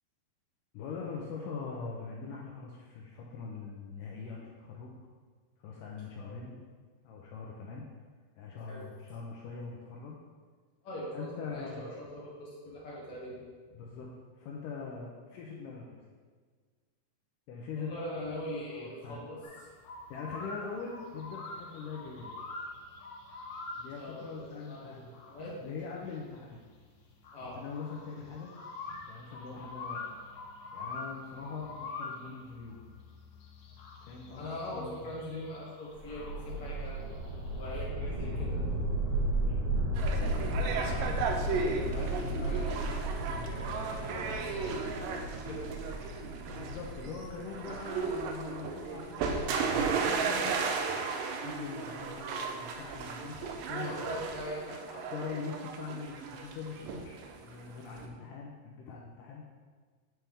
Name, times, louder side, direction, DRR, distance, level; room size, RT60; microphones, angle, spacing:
voice 1, 0.7-4.9 5.6-6.5 7.0-7.9 8.4-10.2 11.1-11.9 13.7-16.0 17.5-18.1 18.7-19.4 20.1-22.3 23.7-25.1 25.6-26.6 27.6-28.5 29.1-30.1 30.7-32.8 34.0-34.5 34.7-35.1 40.8-41.2 42.2-42.6 43.3-43.6 46.6-50.6 51.4-54.2 55.0-59.4, left 5 dB, 85° left, -2 dB, 1.9 m, -42 dB
voice 2, 10.8-13.5 17.8-19.4 24.0-25.6 27.3-27.6 28.9-29.0 34.4-37.0 37.5-38.6 39.4-39.8 40.7-44.9 45.4-45.7 53.7-55.1, left 1 dB, 50° left, -6 dB, 2.0 m, -42 dB
sound 1, 19.4-37.8, left 3 dB, 70° left, 1.9 m, -46 dB
sound 2, 35.9-49.0, right 1 dB, 60° right, 1.7 m, -34 dB
sound 3, 40.0-58.1, right 5 dB, 80° right, 2.0 m, -35 dB
9.2 x 4.5 x 3.4 m, 1.5 s
omnidirectional pair, 4.5 m